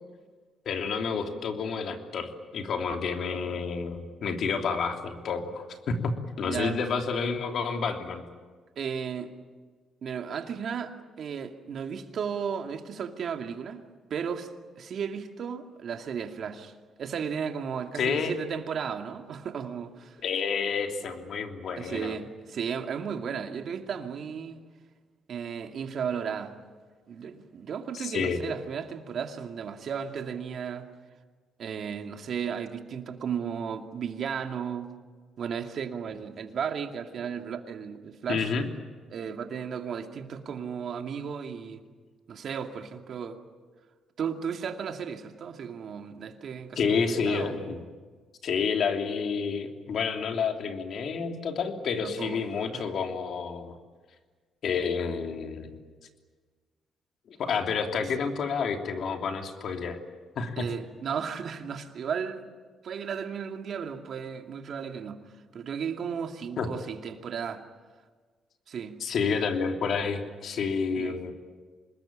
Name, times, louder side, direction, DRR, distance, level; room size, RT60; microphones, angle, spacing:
voice 1, 0.6-8.3 18.0-18.3 20.2-22.1 28.0-28.4 38.3-38.7 46.8-47.8 48.4-53.7 54.6-55.8 57.3-60.0 60.4-60.7 66.6-66.7 69.0-71.3, left 5 dB, 65° left, 3.1 m, -29 dB
voice 2, 6.4-6.9 8.8-9.3 10.0-13.8 14.1-16.7 17.0-20.2 21.8-24.6 25.3-26.6 27.1-30.9 31.6-34.9 35.4-38.5 39.1-41.8 42.3-43.4 44.2-47.8 51.9-52.4 52.7-52.9 60.6-62.4 62.8-65.2 65.5-67.6 68.7-69.0 71.0-71.2, right 7 dB, 60° right, 2.4 m, -34 dB
26.5 x 21.0 x 8.9 m
cardioid pair, 90°, 0 cm